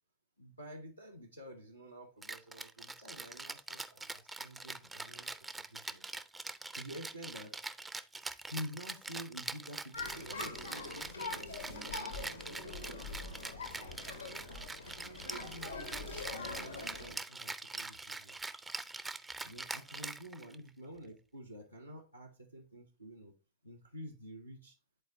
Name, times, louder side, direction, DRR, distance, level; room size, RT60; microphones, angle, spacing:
voice 1, 0.4-6.0 6.7-7.6 8.4-14.5 14.8-18.4 19.4-23.3 23.6-24.8, equal, 85° right, 0.8 m, -49 dB
Rattle (instrument), 2.2-20.7, right 3 dB, 10° right, 0.4 m, -44 dB
sound 1, 9.9-17.1, left 3 dB, 85° left, 1.1 m, -44 dB
9.9 x 4.2 x 2.7 m
figure-of-eight pair, 90°, 0 cm